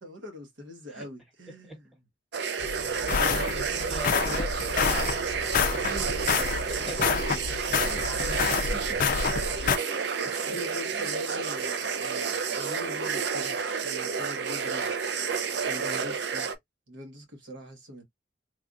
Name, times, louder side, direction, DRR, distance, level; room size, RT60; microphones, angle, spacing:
voice 1, 0.0-1.8 3.1-3.9 5.7-7.4 8.2-8.4 8.7-9.0 9.6-14.9 15.7-16.5 16.9-18.0, equal, 90° right, 1.1 m, -43 dB
sound 1, 2.3-16.6, right 6 dB, 65° right, 0.5 m, -30 dB
sound 2, 2.6-9.8, left 6 dB, 45° left, 0.3 m, -28 dB
voice 2, 2.9-5.5 6.7-8.6 10.2-10.6 10.9-11.1 15.8-16.1, right 1 dB, ahead, 1.1 m, -44 dB
3.4 x 2.3 x 2.4 m
head